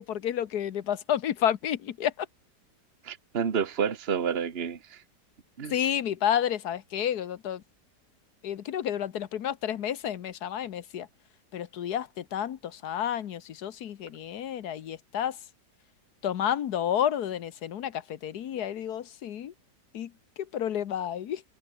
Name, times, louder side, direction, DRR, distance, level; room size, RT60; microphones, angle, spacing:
voice 1, 0.0-2.3 5.7-7.6 8.4-11.1 11.5-15.4 16.2-19.5 19.9-21.4, left 10 dB, 65° left, 1.4 m, -30 dB
voice 2, 3.0-5.0 5.6-5.7, right 7 dB, 35° right, 1.6 m, -29 dB
omnidirectional pair, 1.9 m